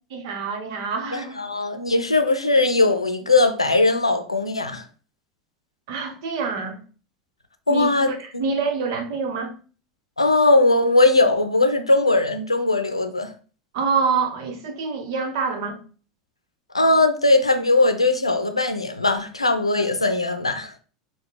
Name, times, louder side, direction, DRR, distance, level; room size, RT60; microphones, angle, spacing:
voice 1, 0.1-1.3 5.9-6.8 7.7-9.5 13.7-15.8, right 5 dB, 55° right, 1.1 m, -26 dB
voice 2, 1.1-4.8 7.7-8.4 10.2-13.3 16.7-20.7, left 2 dB, 85° left, 0.5 m, -19 dB
6.4 x 2.3 x 3.6 m
figure-of-eight pair, 75°, 3 cm